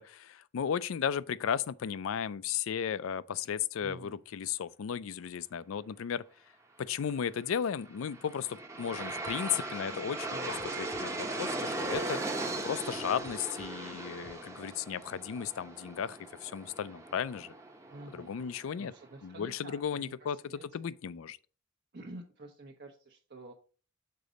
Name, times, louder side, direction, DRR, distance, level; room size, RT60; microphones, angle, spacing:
voice 1, 0.0-6.2 6.8-12.2 12.6-17.5 18.1-18.9 19.2-21.4, left 8 dB, 75° left, 0.4 m, -35 dB
voice 2, 3.8-4.2 10.3-10.6 17.9-20.7 21.9-23.5, right 2 dB, 55° right, 0.9 m, -49 dB
Aircraft, 7.8-18.9, right 2 dB, 15° right, 0.8 m, -38 dB
sound 1, 9.3-9.6 9.9-12.3 12.6-14.4, left 2 dB, 30° left, 0.6 m, -54 dB
6.7 x 4.0 x 5.0 m
head